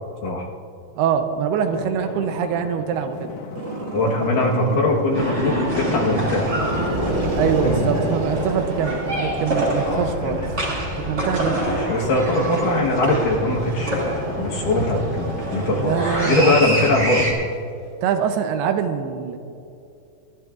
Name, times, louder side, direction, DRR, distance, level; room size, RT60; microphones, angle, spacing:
voice 1, 1.0-3.3 7.4-10.4 11.1-11.7 15.7-16.5 18.0-19.4, right 8 dB, 80° right, 7 dB, 2.6 m, -24 dB
Drum, 1.7-12.7, left 6 dB, 85° left, 1.9 m, -39 dB
Growling, 3.5-5.3 5.8-10.0 11.0-17.5, right 2 dB, 55° right, 1.2 m, -31 dB
voice 2, 3.9-6.6 7.6-8.0 9.8-10.4 11.6-15.9 16.2-17.3, left 2 dB, 65° left, -2 dB, 2.6 m, -22 dB
sound 1, 5.1-17.3, right 1 dB, 25° right, 1.6 m, -26 dB
24.5 x 13.5 x 2.4 m, 2.6 s
omnidirectional pair, 4.7 m